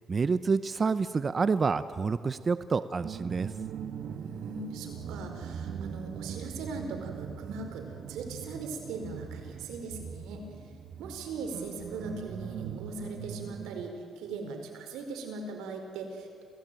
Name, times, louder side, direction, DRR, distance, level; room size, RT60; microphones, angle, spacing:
voice 1, 0.1-3.5, right 4 dB, 35° right, 13 dB, 0.7 m, -28 dB
sound 1, 3.0-13.8, right 7 dB, 65° right, 1.3 m, -40 dB
voice 2, 4.1-10.4 11.0-16.4, right 3 dB, 90° right, 3 dB, 4.6 m, -40 dB
28.0 x 16.5 x 9.2 m, 2.2 s
cardioid pair, 90°, 0 cm